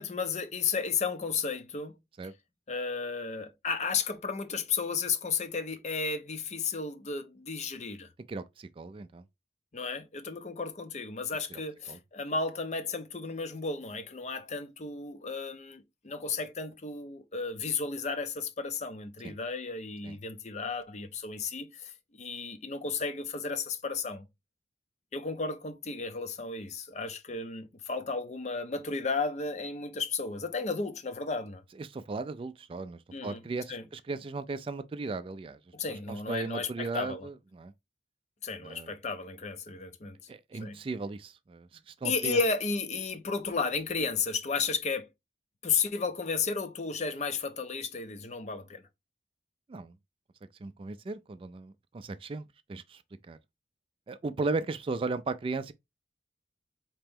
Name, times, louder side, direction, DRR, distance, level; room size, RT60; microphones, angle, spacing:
voice 1, 0.0-2.0 2.7-8.1 9.7-21.9 22.2-24.2 25.1-31.6 33.1-33.4 33.7-33.8 35.7-37.3 38.4-40.2 40.6-40.8 42.0-45.1 45.6-48.8, left 4 dB, 40° left, 0.6 m, -33 dB
voice 2, 8.3-9.2 11.5-11.6 11.9-12.0 19.2-19.4 20.0-20.2 31.8-35.6 35.9-37.7 38.6-38.9 40.3-42.4 49.7-50.0 50.6-53.0 53.3-53.4 54.1-55.7, right 3 dB, 30° right, 0.3 m, -36 dB
4.3 x 2.9 x 3.5 m
head